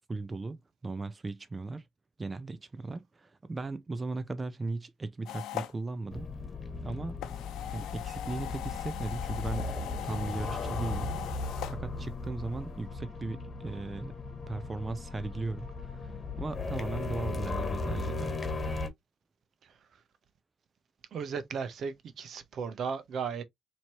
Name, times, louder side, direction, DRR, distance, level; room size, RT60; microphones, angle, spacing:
voice 1, 0.1-0.6 0.8-1.8 2.2-6.3 6.8-7.2 7.7-9.7 10.0-11.2 11.7-14.1 14.5-16.1 16.4-18.4, right 3 dB, 35° right, 0.6 m, -37 dB
sound 1, 5.3-5.7 7.1-11.8, left 11 dB, 90° left, 0.7 m, -40 dB
sound 2, 6.1-18.9, left 3 dB, 40° left, 1.2 m, -37 dB
voice 2, 21.1-23.4, right 6 dB, 70° right, 0.8 m, -36 dB
4.3 x 3.0 x 3.0 m
cardioid pair, 65°, 0 cm